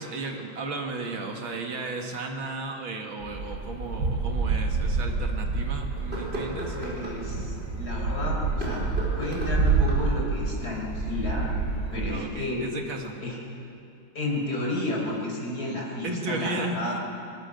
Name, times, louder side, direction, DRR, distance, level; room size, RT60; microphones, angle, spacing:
voice 1, 0.0-6.8 12.1-13.1 16.0-17.0, right 3 dB, 70° right, 2 dB, 2.8 m, -34 dB
sound 1, 3.2-12.2, right 4 dB, 55° right, 5.4 m, -28 dB
sound 2, 4.0-4.1 4.7-4.8 6.0-7.2 8.5-10.2, right 1 dB, 25° right, 5.3 m, -35 dB
voice 2, 6.8-8.8 9.2-11.5 11.9-12.7 13.2-13.4 14.2-17.0, left 2 dB, 45° left, -2 dB, 5.2 m, -32 dB
23.0 x 20.5 x 6.7 m, 2.5 s
omnidirectional pair, 2.3 m